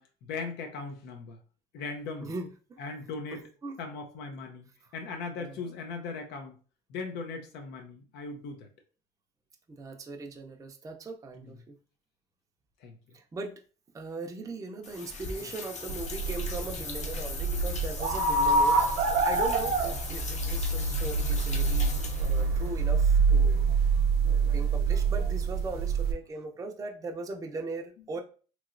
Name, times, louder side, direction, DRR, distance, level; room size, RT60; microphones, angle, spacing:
voice 1, 0.0-1.4 1.7-2.3 2.8-3.5 3.8-4.7 4.9-6.5 6.9-8.7 11.3-11.6 12.8-13.0 15.4-15.5 21.9-22.4, left 4 dB, 85° left, 0.6 m, -39 dB
voice 2, 2.2-2.8 3.3-3.8 5.4-5.7 9.8-11.7 13.1-13.5 13.9-18.8 19.2-23.6 24.4-28.2, right 3 dB, 20° right, 0.5 m, -39 dB
sound 1, 14.8-22.7, left 4 dB, 45° left, 0.6 m, -40 dB
sound 2, 15.9-26.1, right 4 dB, 75° right, 0.7 m, -26 dB
3.0 x 2.8 x 2.5 m
cardioid pair, 110°, 17 cm